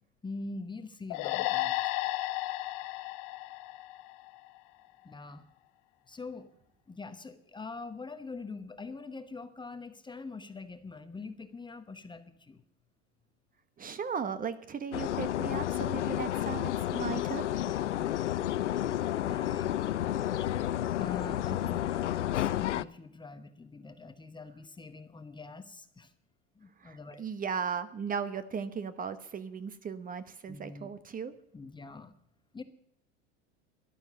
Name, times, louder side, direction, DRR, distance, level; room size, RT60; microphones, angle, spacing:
voice 1, 0.2-1.9 5.0-5.5 6.1-6.5 6.9-12.6 17.6-18.3 18.6-18.9 19.2-19.7 20.9-26.1 26.5-27.2 30.5-30.9 31.5-32.1 32.5-32.6, left 3 dB, 15° left, 10 dB, 1.0 m, -44 dB
sound 1, 1.1-4.6, left 18 dB, 50° left, 0.8 m, -33 dB
voice 2, 13.8-17.5 26.8-31.3, right 6 dB, 25° right, 12 dB, 1.0 m, -36 dB
sound 2, 14.9-22.8, left 12 dB, 90° left, 0.6 m, -31 dB
12.0 x 12.0 x 6.9 m, 0.72 s
hypercardioid pair, 90°, 35 cm